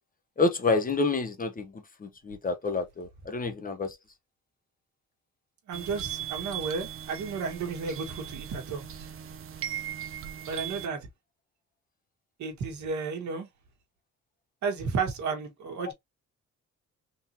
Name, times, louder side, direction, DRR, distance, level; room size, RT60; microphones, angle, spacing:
voice 1, 0.4-4.0, left 3 dB, 30° left, 0.8 m, -28 dB
sound 1, 5.7-10.9, right 10 dB, 45° right, 0.7 m, -38 dB
voice 2, 5.7-9.1 10.5-11.1 12.4-13.5 14.6-15.9, right 5 dB, 70° right, 1.5 m, -33 dB
3.8 x 2.8 x 2.7 m
cardioid pair, 90°, 30 cm